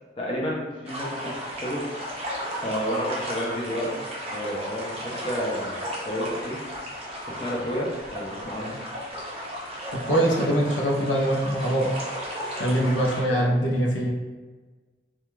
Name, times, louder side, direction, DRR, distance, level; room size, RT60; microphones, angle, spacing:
voice 1, 0.2-1.4 1.6-1.8 2.6-4.0 4.3-6.6 7.3-8.8 12.8-13.0 13.3-13.5, equal, 30° left, -5 dB, 0.5 m, -31 dB
sound 1, 0.9-13.2, equal, 30° right, 0.5 m, -34 dB
voice 2, 10.1-11.9 12.6-14.1, right 1 dB, 85° left, -2 dB, 0.6 m, -23 dB
2.2 x 2.2 x 3.1 m, 1.3 s
head